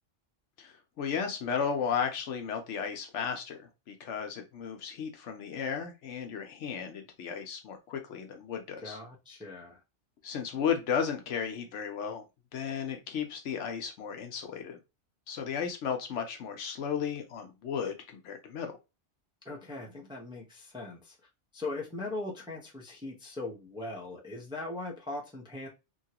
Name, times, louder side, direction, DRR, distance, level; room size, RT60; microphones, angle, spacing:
voice 1, 0.6-9.0 10.2-12.2 12.5-14.8 15.3-18.7, left 7 dB, 80° left, 1.0 m, -34 dB
voice 2, 8.8-9.8 19.4-21.2 21.5-25.7, left 2 dB, 5° right, 0.5 m, -40 dB
3.0 x 2.3 x 2.8 m
omnidirectional pair, 1.2 m